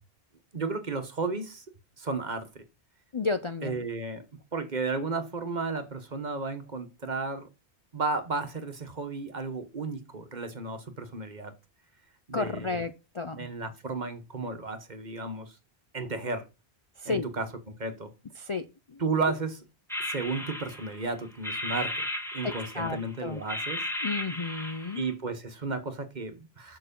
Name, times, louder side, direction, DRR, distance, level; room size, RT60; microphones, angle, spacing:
voice 1, 0.5-1.6 2.0-2.6 3.6-4.2 4.5-7.5 7.9-11.5 12.3-12.8 13.3-15.5 15.9-16.5 17.0-17.5 17.8-18.1 19.0-19.6 20.0-22.1 22.3-23.8 24.9-26.8, right 3 dB, 45° right, 1.3 m, -33 dB
voice 2, 3.1-3.8 12.3-13.5 17.0-17.3 18.4-19.0 22.4-23.4 24.0-25.0, left 3 dB, 40° left, 0.5 m, -32 dB
sound 1, 19.9-21.0 21.4-23.1 23.5-25.1, left 1 dB, ahead, 1.7 m, -35 dB
6.8 x 6.1 x 5.3 m
omnidirectional pair, 1.1 m